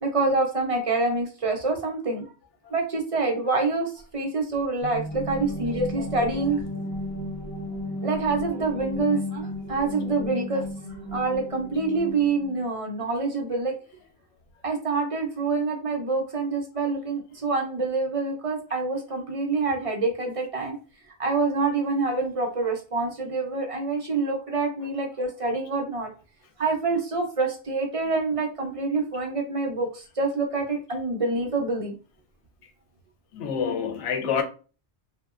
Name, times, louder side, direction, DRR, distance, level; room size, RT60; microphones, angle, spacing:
voice 1, 0.0-2.2 2.7-6.6 8.0-10.7 11.1-13.7 14.6-20.8 21.2-26.1 26.6-31.9, right 3 dB, 50° right, 0.4 m, -26 dB
sound 1, 4.8-12.6, equal, 45° left, 1.2 m, -34 dB
voice 2, 33.3-34.4, left 7 dB, 85° left, 0.9 m, -27 dB
2.7 x 2.1 x 2.4 m
omnidirectional pair, 1.2 m